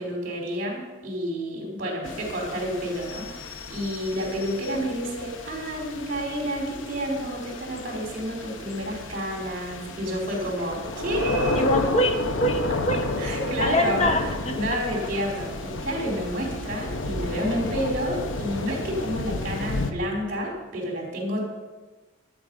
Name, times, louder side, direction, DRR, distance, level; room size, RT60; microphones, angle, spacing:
voice 1, 0.0-11.7 13.2-14.1 14.5-21.4, equal, 45° right, -2 dB, 4.2 m, -30 dB
sound 1, 2.0-19.9, left 2 dB, 85° left, 0.9 m, -32 dB
voice 2, 11.5-13.2 13.6-14.6, equal, 35° left, 5 dB, 1.1 m, -24 dB
13.0 x 7.9 x 5.4 m, 1.2 s
head